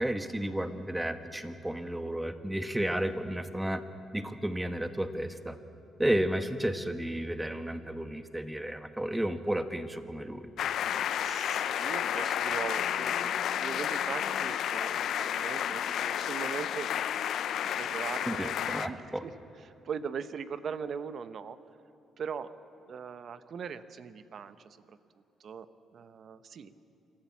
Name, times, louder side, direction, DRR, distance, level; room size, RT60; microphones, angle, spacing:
voice 1, 0.0-3.8 4.1-5.6 6.0-10.5 18.3-19.2, right 1 dB, 10° right, 9 dB, 1.2 m, -32 dB
sound 1, 10.6-18.9, left 9 dB, 70° left, 0.6 m, -31 dB
voice 2, 11.2-16.9 17.7-19.3 19.6-21.6 22.2-22.5 22.9-25.0 25.4-26.7, right 6 dB, 55° right, 13 dB, 0.8 m, -40 dB
26.5 x 13.5 x 7.3 m, 2.8 s
cardioid pair, 90°, 0 cm